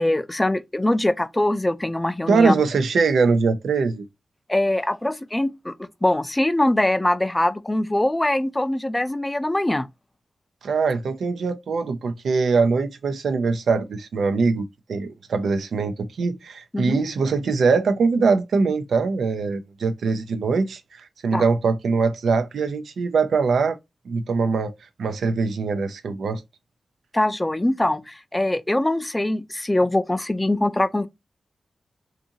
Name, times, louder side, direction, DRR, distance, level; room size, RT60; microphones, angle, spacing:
voice 1, 0.0-2.5 4.5-5.7 6.0-9.9 16.7-17.0 21.3-21.4 27.1-31.1, left 1 dB, 20° left, 0.3 m, -22 dB
voice 2, 2.3-4.1 10.6-23.8 24.1-24.7 25.0-26.4, right 4 dB, 85° right, 0.3 m, -22 dB
2.6 x 2.5 x 2.6 m
cardioid pair, 55°, 0 cm